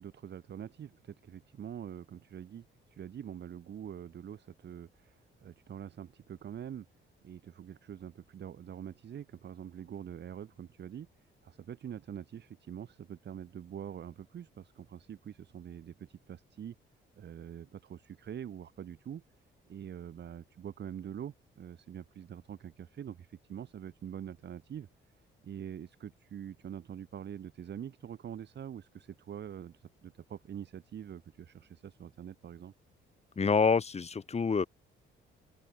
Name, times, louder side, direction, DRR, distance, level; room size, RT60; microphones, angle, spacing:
voice 1, 0.0-6.9 7.2-11.1 11.4-16.7 17.2-19.2 19.7-24.9 25.4-32.7, right 9 dB, 60° right, 4.8 m, -45 dB
voice 2, 33.4-34.7, left 5 dB, 30° left, 1.5 m, -27 dB
open air
cardioid pair, 90°, 20 cm